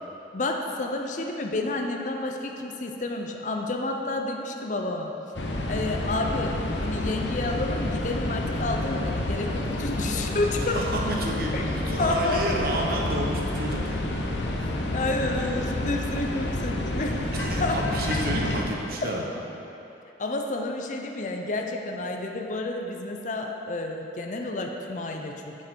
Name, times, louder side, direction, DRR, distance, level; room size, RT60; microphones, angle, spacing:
voice 1, 0.3-5.1 5.7-10.8 11.5-12.5 14.2-14.4 14.9-17.3 17.6-17.9 19.0-19.1 20.2-25.7, left 2 dB, 45° left, 2 dB, 0.6 m, -30 dB
sound 1, 5.3-18.6, left 1 dB, 85° left, 0.8 m, -29 dB
voice 2, 10.7-14.0 17.3-19.2, right 1 dB, 55° right, -1 dB, 0.9 m, -30 dB
7.5 x 7.1 x 4.5 m, 2.9 s
head